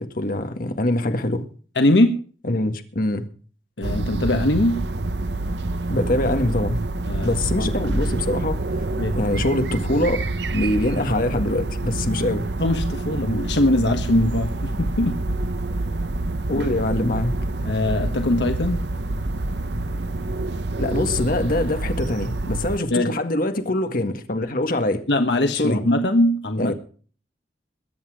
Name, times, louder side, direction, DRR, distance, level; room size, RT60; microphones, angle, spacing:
voice 1, 0.0-1.4 2.4-3.3 5.9-6.8 7.2-8.8 9.1-10.2 10.5-12.5 16.5-17.4 20.8-25.0 25.5-25.8 26.6-26.7, left 1 dB, 55° left, 1.8 m, -24 dB
voice 2, 1.7-2.2 3.8-4.8 7.1-7.7 9.0-9.2 12.6-15.2 17.6-18.8 22.9-23.1 25.1-26.7, left 1 dB, 75° left, 1.3 m, -21 dB
sound 1, 3.8-22.8, right 2 dB, 75° right, 0.9 m, -27 dB
22.0 x 8.5 x 4.9 m
head